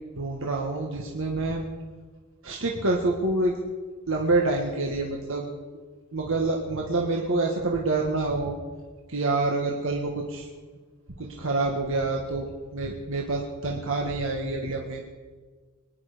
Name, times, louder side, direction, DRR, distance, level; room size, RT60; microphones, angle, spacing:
voice 1, 0.2-1.7 2.4-3.5 4.1-5.5 6.1-8.6 9.1-10.5 11.2-15.0, right 2 dB, 65° right, 0 dB, 1.6 m, -27 dB
24.0 x 10.5 x 5.1 m, 1.5 s
head